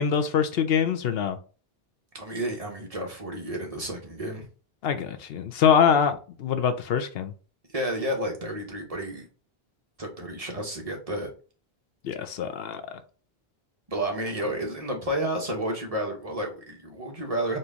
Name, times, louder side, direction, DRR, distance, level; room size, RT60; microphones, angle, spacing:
voice 1, 0.0-1.4 4.8-6.1 6.4-7.3 12.0-12.8, left 7 dB, 70° left, 0.8 m, -24 dB
voice 2, 2.1-4.5 7.7-9.3 10.0-11.3 13.9-17.6, right 1 dB, 35° right, 1.1 m, -31 dB
4.4 x 2.7 x 3.5 m
omnidirectional pair, 1.0 m